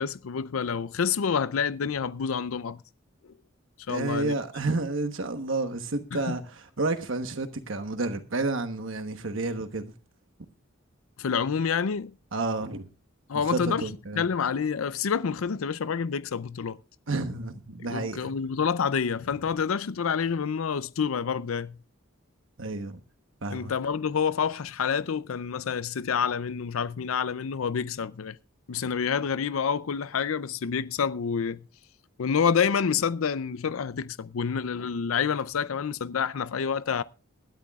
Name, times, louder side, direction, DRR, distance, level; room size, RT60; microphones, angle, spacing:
voice 1, 0.0-2.8 3.9-4.3 6.1-6.4 11.2-12.1 13.3-13.9 14.2-16.8 17.9-21.8 23.5-28.4 28.7-31.6 32.2-37.0, left 6 dB, 85° left, 0.5 m, -28 dB
voice 2, 3.9-9.9 12.3-12.9 13.5-14.2 17.1-18.3 22.6-23.0 23.4-23.7, right 3 dB, 65° right, 1.1 m, -30 dB
20.0 x 12.5 x 2.4 m
head